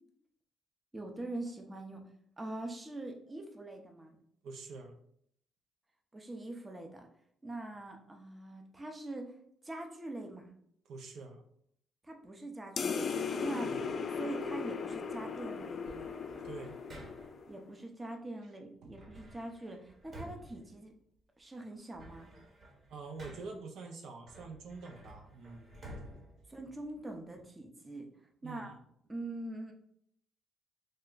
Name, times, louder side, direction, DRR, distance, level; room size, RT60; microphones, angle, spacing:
voice 1, 0.9-2.1 2.4-4.2 6.1-7.1 7.4-9.3 9.6-10.5 12.0-13.7 14.1-16.1 17.5-20.9 21.4-22.3 26.5-28.1 28.4-28.7 29.1-29.7, right 2 dB, 20° right, 3 dB, 0.6 m, -43 dB
voice 2, 4.4-4.9 10.9-11.4 13.6-13.8 16.4-16.7 18.8-19.0 22.9-25.8 28.4-28.7, right 3 dB, 75° right, 3 dB, 0.5 m, -46 dB
sound 1, 12.8-17.6, left 5 dB, 50° left, 0.3 m, -37 dB
sound 2, 15.8-17.5 18.9-21.4 21.8-23.7 24.2-27.3, right 1 dB, 50° right, 1.0 m, -52 dB
3.3 x 2.1 x 3.8 m, 0.68 s
cardioid pair, 90°, 0 cm